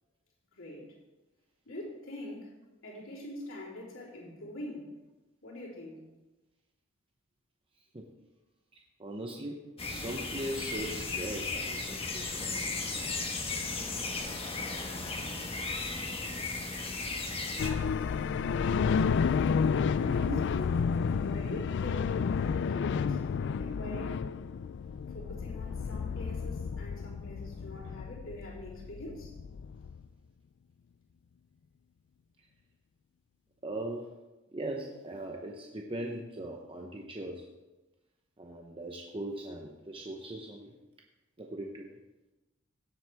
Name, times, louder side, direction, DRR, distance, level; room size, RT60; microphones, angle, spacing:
voice 1, 0.5-1.0 1.7-4.9 5.4-6.1 19.9-20.8 21.2-24.4 25.1-29.3, left 1 dB, 75° left, -5 dB, 3.9 m, -44 dB
voice 2, 8.7-9.6 9.9-12.7 20.3-20.4 33.6-34.1 34.5-37.5 38.4-40.7 41.4-41.9, right 1 dB, 25° right, 1 dB, 0.9 m, -39 dB
sound 1, 9.8-17.7, left 3 dB, 30° left, 1.4 m, -35 dB
sound 2, 14.2-22.1, right 1 dB, 45° right, 2.8 m, -56 dB
sound 3, 17.6-30.0, left 6 dB, 60° left, 0.3 m, -31 dB
17.5 x 7.7 x 3.5 m, 1.1 s
head